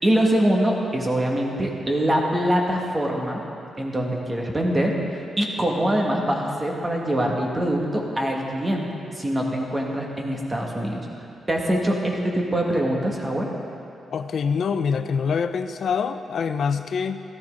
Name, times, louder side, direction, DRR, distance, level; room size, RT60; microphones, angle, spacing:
voice 1, 0.0-3.4 3.8-5.0 5.4-8.9 9.1-11.1 11.5-13.5, right 1 dB, 20° right, -1 dB, 2.0 m, -23 dB
voice 2, 14.1-17.2, left 6 dB, 65° left, 10 dB, 0.6 m, -25 dB
15.0 x 13.5 x 3.9 m, 2.6 s
cardioid pair, 90°, 0 cm